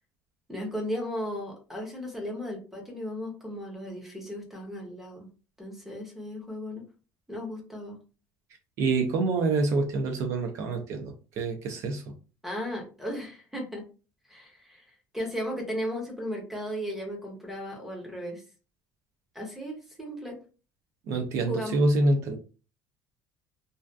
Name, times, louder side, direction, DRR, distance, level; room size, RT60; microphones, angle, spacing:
voice 1, 0.5-5.3 5.6-6.9 7.3-8.0 12.4-13.8 14.3-18.4 19.3-20.4 21.5-21.8, equal, 5° right, 0 dB, 0.6 m, -35 dB
voice 2, 8.8-12.0 21.1-22.4, right 3 dB, 45° right, 4 dB, 0.4 m, -26 dB
2.5 x 2.2 x 2.2 m, 0.35 s
cardioid pair, 175°, 7 cm